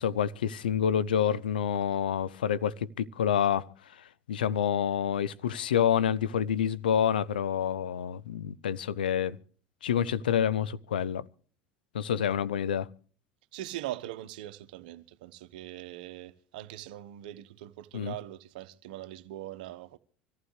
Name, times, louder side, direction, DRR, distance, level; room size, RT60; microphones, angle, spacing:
voice 1, 0.0-3.7 4.3-9.4 9.8-11.2 11.9-12.9 17.9-18.1, left 9 dB, 85° left, 0.6 m, -28 dB
voice 2, 13.5-20.0, right 14 dB, 75° right, 1.0 m, -41 dB
25.0 x 14.5 x 3.2 m
hypercardioid pair, 75°, 5 cm